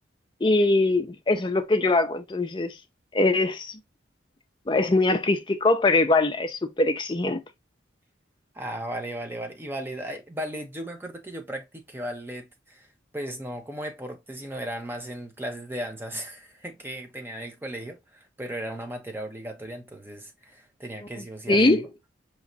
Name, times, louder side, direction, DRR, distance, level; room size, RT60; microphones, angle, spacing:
voice 1, 0.4-2.7 3.1-3.8 4.7-7.4 21.5-21.8, left 2 dB, 25° left, 0.5 m, -22 dB
voice 2, 8.5-12.9 13.1-21.8, right 1 dB, 10° right, 0.8 m, -36 dB
4.8 x 3.0 x 2.7 m
head